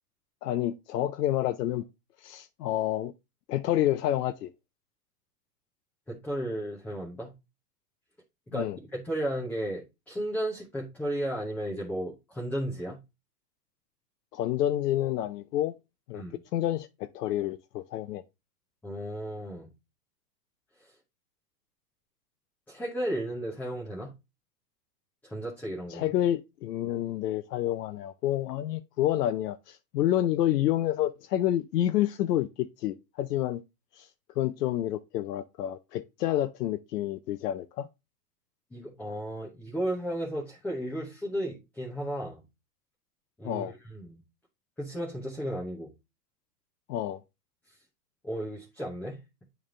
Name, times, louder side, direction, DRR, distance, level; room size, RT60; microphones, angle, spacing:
voice 1, 0.4-1.8 2.2-3.1 3.5-4.5 8.5-8.8 14.3-15.7 16.1-16.2 16.5-18.2 25.9-33.6 33.9-34.1 34.4-37.9 43.4-43.7 46.9-47.2, left 12 dB, 75° left, 0.7 m, -29 dB
voice 2, 6.1-7.3 8.5-13.0 16.1-16.4 18.8-19.7 22.7-24.1 25.2-26.1 38.7-42.4 43.4-44.2 44.8-45.9 48.2-49.2, right 1 dB, 5° left, 0.9 m, -34 dB
8.7 x 3.5 x 3.7 m
supercardioid pair, 165°, 49 cm